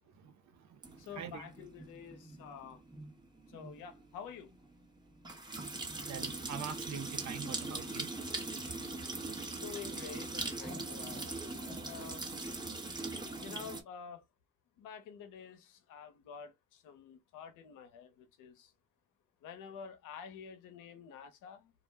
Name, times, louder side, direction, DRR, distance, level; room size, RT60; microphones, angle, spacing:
voice 1, 0.2-1.4 6.1-8.1, right 7 dB, 65° right, 0.7 m, -44 dB
sound 1, 0.8-13.8, right 2 dB, 15° right, 0.8 m, -41 dB
voice 2, 1.0-2.8 3.5-4.5 9.5-12.3 13.4-14.2 14.8-18.7 19.4-21.7, left 7 dB, 90° left, 0.7 m, -49 dB
2.3 x 2.1 x 3.3 m
cardioid pair, 90°, 30 cm